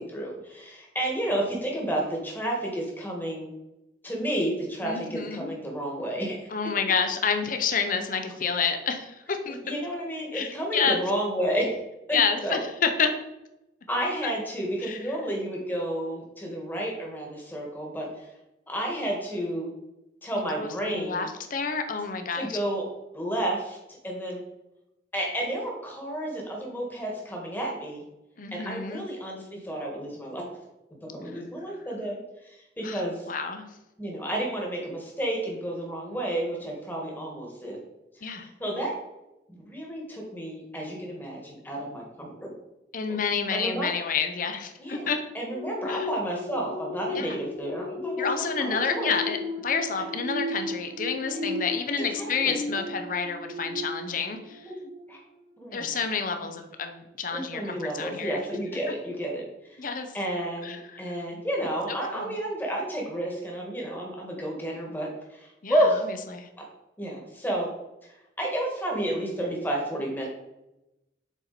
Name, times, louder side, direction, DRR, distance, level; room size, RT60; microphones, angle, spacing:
voice 1, 0.0-3.5 4.0-6.4 9.5-11.8 12.4-12.6 13.9-18.3 18.7-19.7 20.2-21.2 22.4-22.8 23.1-23.8 24.0-24.4 25.1-28.0 28.5-30.4 31.0-33.3 34.0-37.8 38.1-38.9 39.5-42.5 43.1-43.9 44.8-45.1 45.3-49.1 51.3-51.4 52.0-52.6 54.7-54.8 55.1-55.2 55.6-56.0 56.4-56.5 57.3-59.8 60.1-66.1 66.6-66.7 67.0-67.7 68.4-70.3, right 1 dB, 10° left, -2 dB, 1.6 m, -31 dB
voice 2, 4.8-5.5 6.5-9.6 10.3-11.0 12.1-13.1 14.8-15.0 20.4-22.6 28.4-29.0 31.3-31.4 32.8-33.7 38.2-38.5 42.9-45.2 45.9-46.1 47.1-47.4 48.2-49.4 49.6-54.7 55.7-58.4 59.8-60.1 60.6-61.0 61.9-62.3 65.6-65.9 66.3-66.5, left 5 dB, 45° left, 6 dB, 0.7 m, -29 dB
sound 1, 45.5-55.4 55.8-56.0, left 1 dB, 35° right, 1.0 m, -35 dB
7.0 x 4.4 x 4.1 m, 0.92 s
head